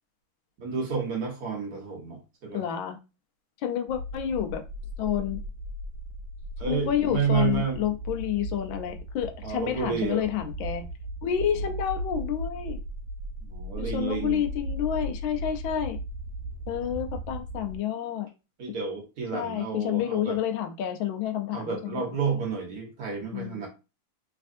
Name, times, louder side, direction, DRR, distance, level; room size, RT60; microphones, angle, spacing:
voice 1, 0.6-2.6 6.6-7.9 9.4-10.3 11.5-11.7 13.4-14.5 18.6-20.4 21.5-23.7, right 6 dB, 55° right, 1.4 m, -30 dB
voice 2, 2.5-3.0 3.6-4.6 5.0-5.4 6.7-10.9 11.2-12.8 13.8-16.0 16.7-18.3 19.3-22.1 23.3-23.7, left 10 dB, 85° left, 1.4 m, -29 dB
sound 1, 3.9-17.8, right 1 dB, 90° right, 1.5 m, -37 dB
3.4 x 3.3 x 2.5 m
omnidirectional pair, 2.1 m